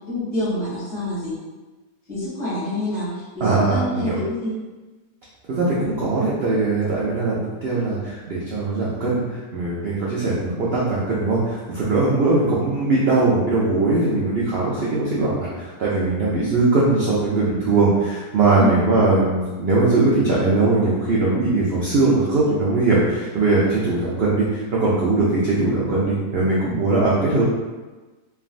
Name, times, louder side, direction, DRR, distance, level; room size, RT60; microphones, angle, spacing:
voice 1, 0.0-1.4 2.1-4.6 18.6-18.8, left 1 dB, 45° left, -10 dB, 1.3 m, -27 dB
voice 2, 3.4-4.2 5.5-27.4, right 3 dB, 75° right, -6 dB, 0.5 m, -20 dB
3.3 x 2.4 x 2.5 m, 1.2 s
omnidirectional pair, 1.7 m